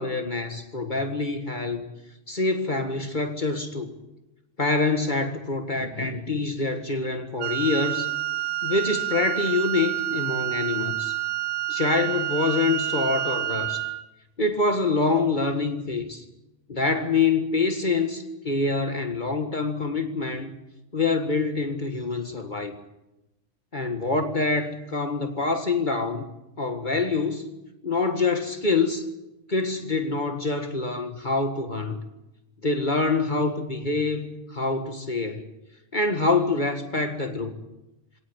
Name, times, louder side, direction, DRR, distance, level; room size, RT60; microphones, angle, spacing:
voice 1, 0.0-1.8 2.3-3.9 4.6-8.1 8.6-11.1 11.7-13.9 14.4-16.2 16.7-20.5 20.9-22.8 23.7-26.3 26.6-27.5 27.8-29.0 29.5-32.0 32.6-35.4 35.9-37.5, left 3 dB, 30° left, 5 dB, 0.9 m, -25 dB
Wind instrument woodwind instrument, 7.4-14.1, right 17 dB, 70° right, 2.1 m, -28 dB
23.5 x 18.0 x 8.1 m, 0.94 s
omnidirectional pair, 3.7 m